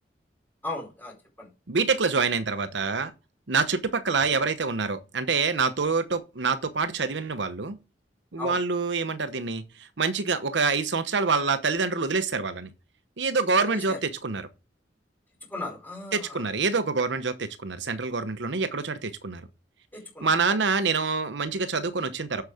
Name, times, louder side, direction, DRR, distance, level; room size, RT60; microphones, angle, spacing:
voice 1, 0.6-1.5 8.4-8.6 13.6-14.0 15.5-16.5 19.9-20.6, left 2 dB, 10° left, 4.5 m, -37 dB
voice 2, 1.7-3.1 3.5-7.8 8.3-12.7 13.2-14.5 16.1-19.4 20.2-22.4, right 4 dB, 75° right, 0.9 m, -26 dB
8.1 x 6.7 x 4.9 m
head